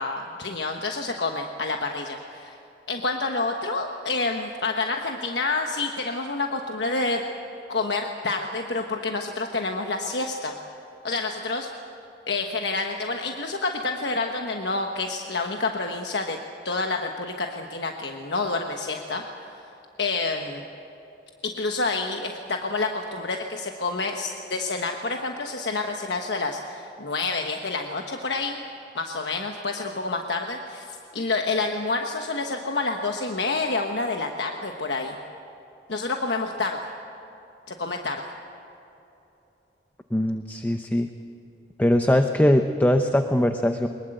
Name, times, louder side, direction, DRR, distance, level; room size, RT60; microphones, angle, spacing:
voice 1, 0.0-2.6 2.9-7.2 7.7-10.5 11.0-11.7 12.3-16.4 16.6-19.6 20.0-20.6 21.4-28.6 28.9-35.2 35.9-36.9 37.7-38.2, left 3 dB, 75° left, 3 dB, 1.2 m, -28 dB
voice 2, 40.1-41.1 41.8-43.9, left 1 dB, 10° left, 6 dB, 0.7 m, -21 dB
23.0 x 21.0 x 7.9 m, 2.9 s
head